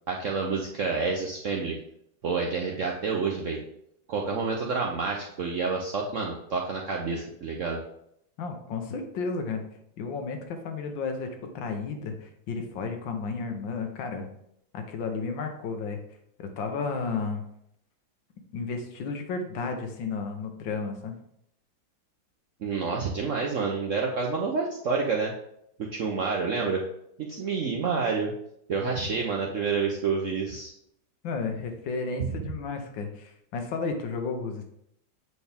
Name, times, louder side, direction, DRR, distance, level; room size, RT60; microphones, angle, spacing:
voice 1, 0.1-1.8 2.2-3.6 4.1-7.8 22.6-25.3 25.8-26.8 27.2-28.3 28.7-30.7 32.2-32.3, right 4 dB, 70° right, -1 dB, 0.7 m, -28 dB
voice 2, 8.4-9.6 10.0-11.3 11.5-14.3 14.7-16.0 16.4-17.4 18.5-21.1 31.2-34.6, left 4 dB, 70° left, 5 dB, 1.6 m, -32 dB
8.0 x 4.3 x 3.5 m, 0.74 s
omnidirectional pair, 2.2 m